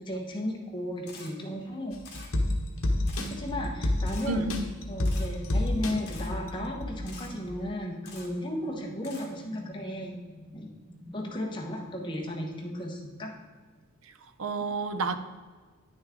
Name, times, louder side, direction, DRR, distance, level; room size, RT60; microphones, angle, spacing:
voice 1, 0.0-2.0 3.3-4.5 4.9-10.1 10.5-10.7 11.1-13.3, left 1 dB, 20° left, 0 dB, 1.2 m, -35 dB
Camera, 1.1-1.3 2.0-2.3 3.1-3.3 4.1-4.3 5.0-5.3 6.1-6.3 7.1-7.3 8.0-8.3 9.0-9.3, left 4 dB, 50° left, 1.8 m, -46 dB
sound 1, 1.9-7.1 7.5-7.6, left 1 dB, 75° left, 1.1 m, -30 dB
sound 2, 2.4-11.3, equal, 45° right, 1.6 m, -49 dB
voice 2, 4.3-4.7 14.4-15.2, right 3 dB, 65° right, 10 dB, 0.6 m, -30 dB
9.6 x 6.3 x 3.7 m, 1.4 s
head